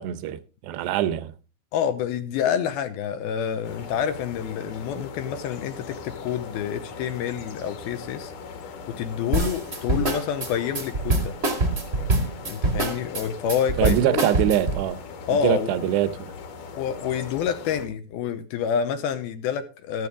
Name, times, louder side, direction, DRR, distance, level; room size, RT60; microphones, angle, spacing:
voice 1, 0.0-1.3 13.8-15.0 15.3-16.3, right 11 dB, 80° right, 3.0 m, -24 dB
voice 2, 1.7-8.3 8.6-11.3 12.5-14.2 15.3-15.8 16.8-20.1, left 8 dB, 75° left, 2.5 m, -28 dB
sound 1, 3.6-17.9, left 5 dB, 55° left, 3.0 m, -40 dB
sound 2, 9.3-14.8, right 2 dB, 40° right, 0.9 m, -24 dB
13.5 x 12.5 x 3.7 m
omnidirectional pair, 4.9 m